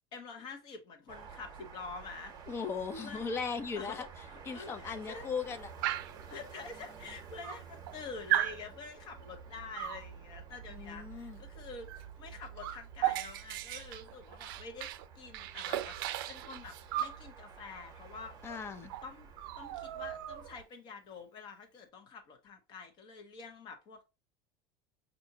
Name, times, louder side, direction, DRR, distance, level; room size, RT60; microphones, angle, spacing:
voice 1, 0.1-2.4 3.0-3.3 3.8-5.3 6.3-14.9 15.1-18.6 19.0-19.3 19.6-24.1, left 4 dB, 40° left, 0.9 m, -47 dB
sound 1, 1.1-20.6, right 6 dB, 30° right, 0.9 m, -51 dB
voice 2, 2.5-4.1 4.5-5.7 10.7-11.4 18.4-18.9, left 5 dB, 20° left, 0.5 m, -37 dB
Dog, 5.8-6.2 7.1-7.2 7.4-8.0 8.3-8.6 9.8-10.1 11.9-12.1 12.3-15.0 15.3-17.2 18.5-18.6 18.9-19.1 19.4-20.6, right 13 dB, 85° right, 0.4 m, -36 dB
5.6 x 2.6 x 2.7 m
cardioid pair, 155°, 11 cm